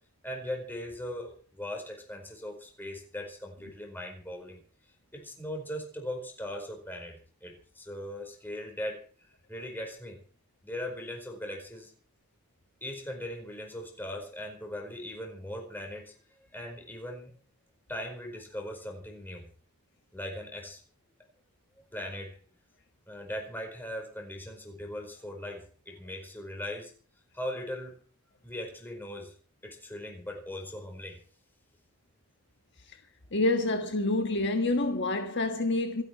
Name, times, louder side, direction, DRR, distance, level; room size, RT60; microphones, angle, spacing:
voice 1, 0.2-4.6 5.1-9.0 9.5-10.2 10.6-11.9 12.8-16.1 16.5-17.3 17.9-19.5 20.1-20.8 21.8-22.3 23.1-26.9 27.3-27.9 28.4-29.3 29.6-31.2, left 1 dB, 10° left, 4.7 m, -39 dB
voice 2, 33.3-36.0, left 2 dB, 50° left, 1.5 m, -27 dB
27.0 x 9.2 x 4.5 m
head